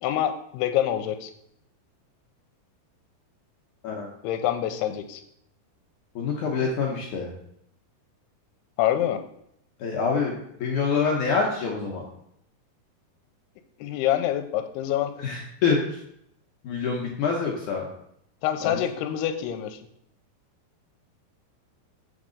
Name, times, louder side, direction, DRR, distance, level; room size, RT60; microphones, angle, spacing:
voice 1, 0.0-1.3 4.2-5.2 8.8-9.2 13.8-15.1 18.4-19.8, left 11 dB, 90° left, 8 dB, 2.6 m, -26 dB
voice 2, 6.2-7.3 9.8-10.3 10.6-12.1 15.2-16.0 16.6-17.9 18.6-18.8, left 5 dB, 70° left, -1 dB, 1.9 m, -26 dB
7.3 x 6.5 x 3.8 m, 0.73 s
omnidirectional pair, 4.6 m